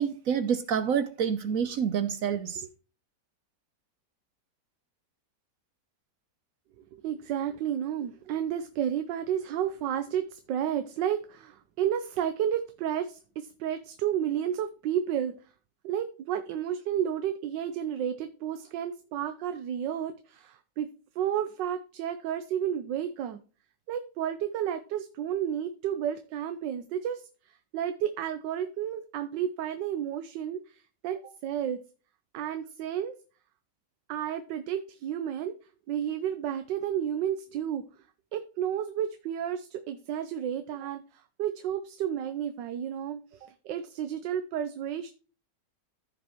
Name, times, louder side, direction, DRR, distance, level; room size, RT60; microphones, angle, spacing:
voice 1, 0.0-2.7, right 7 dB, 65° right, 0.9 m, -28 dB
voice 2, 7.0-15.3 15.8-20.9 21.2-23.4 23.9-31.8 32.3-33.1 34.1-35.5 35.9-37.8 38.3-45.1, right 9 dB, 85° right, 1.4 m, -32 dB
14.5 x 5.2 x 3.0 m
omnidirectional pair, 1.9 m